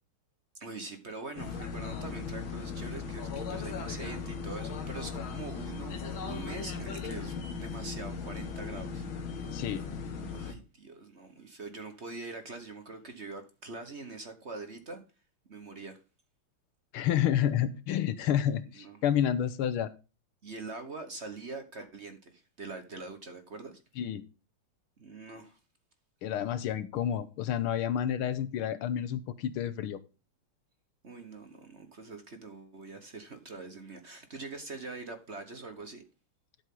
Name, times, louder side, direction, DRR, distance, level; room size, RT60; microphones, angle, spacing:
voice 1, 0.6-6.0 6.3-9.0 10.3-15.0 15.5-16.0 18.7-19.0 20.4-23.8 25.0-25.6 31.0-36.0, right 3 dB, 40° right, 1.3 m, -43 dB
sound 1, 1.4-10.5, left 5 dB, 70° left, 2.3 m, -38 dB
voice 2, 9.5-9.9 16.9-19.9 24.0-24.2 26.2-30.0, left 10 dB, 85° left, 1.7 m, -29 dB
12.0 x 7.9 x 3.8 m
omnidirectional pair, 2.3 m